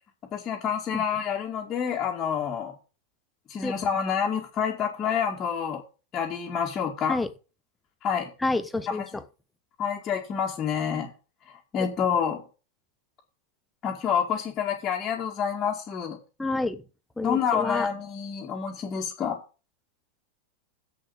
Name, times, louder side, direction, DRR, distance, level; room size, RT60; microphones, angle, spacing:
voice 1, 0.3-2.7 3.5-5.8 6.1-7.2 8.0-8.3 8.9-9.1 9.8-11.1 11.5-12.4 13.8-16.2 17.2-19.4, left 7 dB, 25° left, 2.2 m, -28 dB
voice 2, 8.4-9.2 16.4-16.8 17.2-17.9, left 2 dB, 5° left, 1.0 m, -28 dB
7.9 x 6.6 x 8.1 m
figure-of-eight pair, 90°, 0 cm